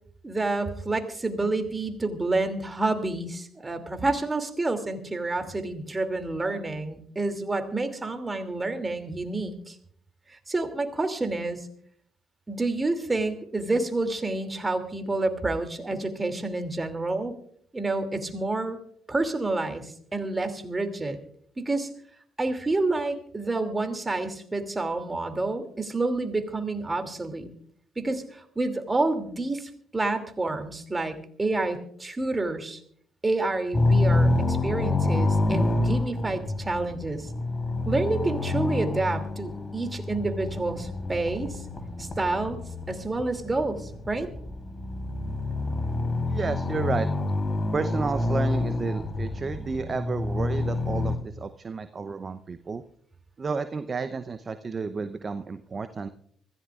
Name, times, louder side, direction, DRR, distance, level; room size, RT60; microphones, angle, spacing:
voice 1, 0.2-9.7 10.5-11.6 12.5-17.3 17.7-18.8 19.1-21.2 21.6-21.9 22.4-27.5 28.0-32.8 33.2-37.3 37.8-41.6 42.0-42.6 42.9-44.3, right 2 dB, 25° right, 7 dB, 2.7 m, -29 dB
sound 1, 33.7-51.2, left 2 dB, 30° left, 3.5 m, -27 dB
voice 2, 46.3-47.1 47.7-52.8 53.4-56.1, right 4 dB, 40° right, 12 dB, 0.8 m, -31 dB
25.0 x 15.0 x 2.5 m, 0.63 s
hypercardioid pair, 45°, 0 cm